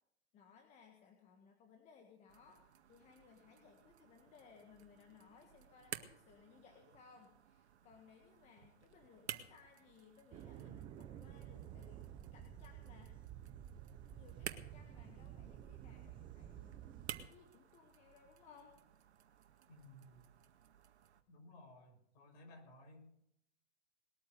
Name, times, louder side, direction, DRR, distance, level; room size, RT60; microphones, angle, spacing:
voice 1, 0.3-13.1 14.0-17.0 17.3-18.8, left 6 dB, 20° left, 3 dB, 1.6 m, -63 dB
sound 1, 2.3-21.2, right 9 dB, 80° right, 2.0 m, -54 dB
sound 2, 10.3-17.3, right 11 dB, 15° right, 0.6 m, -52 dB
voice 2, 19.7-20.3 21.3-23.3, left 1 dB, 40° left, 2 dB, 6.2 m, -58 dB
21.0 x 8.9 x 6.8 m, 0.74 s
hypercardioid pair, 155°, 33 cm